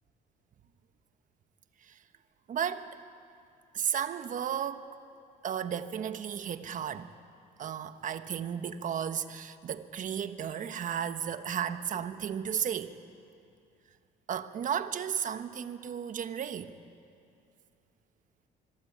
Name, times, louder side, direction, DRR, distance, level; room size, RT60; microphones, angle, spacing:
voice 1, 2.5-2.9 3.7-4.9 5.4-7.1 7.6-12.9 14.3-16.7, right 8 dB, 50° right, 1.3 m, -34 dB
25.0 x 22.5 x 8.8 m
cardioid pair, 110°, 17 cm